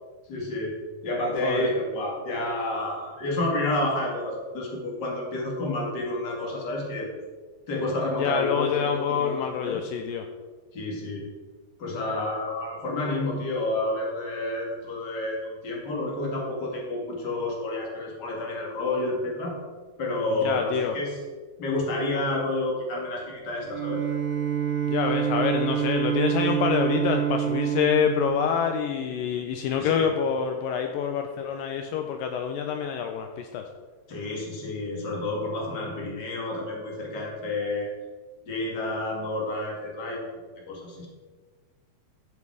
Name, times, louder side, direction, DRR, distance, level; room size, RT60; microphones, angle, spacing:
voice 1, 0.3-7.2 7.7-9.8 10.7-11.3 11.8-19.6 20.0-21.2 21.6-24.0 29.8-30.0 34.1-37.9 38.5-40.3 40.7-41.1, left 2 dB, 35° left, -2 dB, 2.1 m, -30 dB
voice 2, 1.4-1.7 8.2-10.3 20.3-21.0 24.9-33.7, left 7 dB, 85° left, 5 dB, 2.0 m, -26 dB
Bowed string instrument, 23.6-29.3, right 9 dB, 90° right, 4.0 m, -27 dB
14.5 x 5.4 x 4.8 m, 1.4 s
omnidirectional pair, 4.6 m